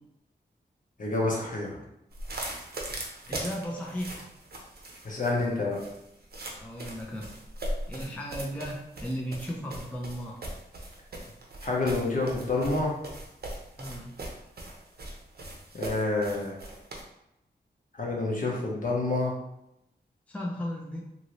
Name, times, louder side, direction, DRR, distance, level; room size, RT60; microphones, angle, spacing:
voice 1, 1.0-1.8 5.0-5.8 11.6-13.0 15.7-16.6 18.0-19.3, left 2 dB, 50° left, -2 dB, 0.8 m, -28 dB
sound 1, 2.1-17.0, right 1 dB, 65° right, 0.7 m, -39 dB
voice 2, 3.3-4.3 6.6-7.3 7.9-10.4 13.8-14.1 20.3-21.0, equal, 5° left, -2 dB, 0.5 m, -35 dB
2.7 x 2.6 x 3.0 m, 0.85 s
wide cardioid pair, 85°, 18 cm